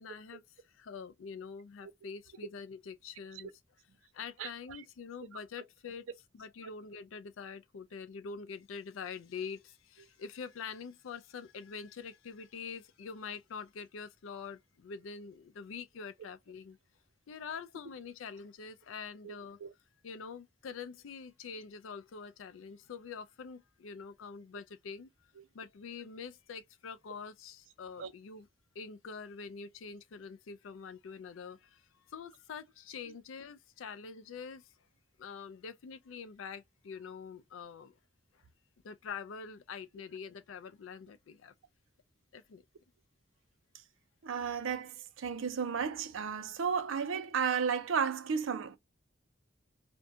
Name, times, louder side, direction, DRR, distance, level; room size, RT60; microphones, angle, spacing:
voice 1, 0.0-3.5 4.1-6.1 6.3-16.8 17.3-19.6 20.0-25.1 25.5-28.5 28.7-34.7 35.2-38.0 38.3-38.4 38.8-41.5 42.3-42.6, left 5 dB, 85° left, 0.4 m, -45 dB
voice 2, 44.2-48.8, right 6 dB, 85° right, 0.5 m, -33 dB
2.6 x 2.2 x 2.6 m
head